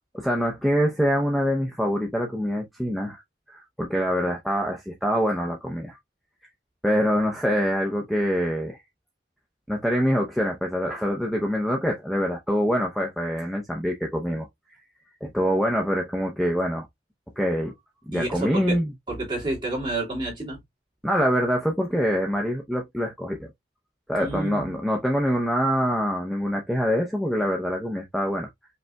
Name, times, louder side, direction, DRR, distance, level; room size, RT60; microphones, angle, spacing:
voice 1, 0.1-3.2 3.5-6.0 6.8-8.8 9.7-14.5 15.2-16.9 17.4-17.7 18.1-18.9 21.0-23.5 24.1-28.5, equal, ahead, 0.6 m, -25 dB
voice 2, 18.1-18.8 19.1-20.6 24.2-24.7, right 2 dB, 25° right, 2.7 m, -29 dB
5.2 x 3.3 x 2.2 m
head